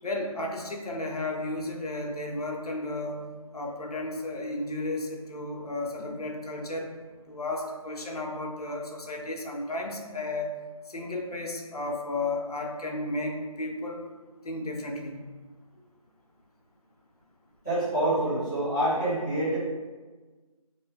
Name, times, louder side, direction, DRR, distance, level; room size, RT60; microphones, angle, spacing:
voice 1, 0.0-3.2 3.5-6.9 7.3-10.5 10.9-14.0 14.4-15.3, left 2 dB, 80° left, 0 dB, 0.7 m, -33 dB
voice 2, 17.6-19.6, right 1 dB, 10° left, -16 dB, 1.2 m, -26 dB
2.7 x 2.1 x 3.5 m, 1.3 s
figure-of-eight pair, 180°, 19 cm